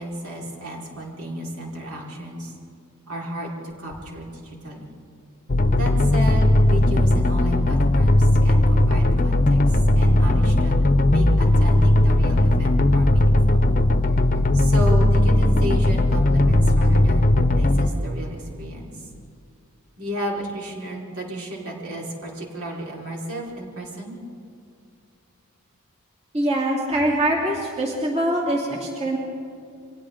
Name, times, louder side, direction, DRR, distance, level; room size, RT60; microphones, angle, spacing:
voice 1, 0.0-2.5 3.1-4.9 5.7-10.7 11.1-13.6 14.5-19.1 20.0-24.2, equal, 70° right, -3 dB, 4.8 m, -33 dB
sound 1, 5.5-17.9, left 1 dB, 40° left, 0.9 m, -17 dB
voice 2, 26.3-29.2, right 1 dB, 30° right, -2 dB, 2.7 m, -23 dB
30.0 x 24.5 x 3.9 m, 2.5 s
head